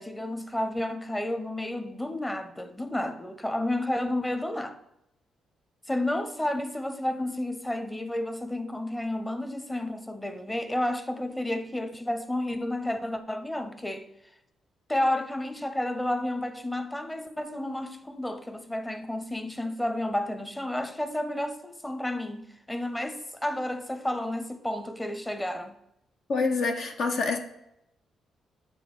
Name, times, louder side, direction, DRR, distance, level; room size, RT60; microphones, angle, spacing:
voice 1, 0.0-4.8 5.9-14.1 14.9-25.7, left 1 dB, 10° left, 0.9 m, -31 dB
voice 2, 26.3-27.4, left 4 dB, 60° left, 0.7 m, -26 dB
8.7 x 3.5 x 4.9 m
hypercardioid pair, 40°, 0 cm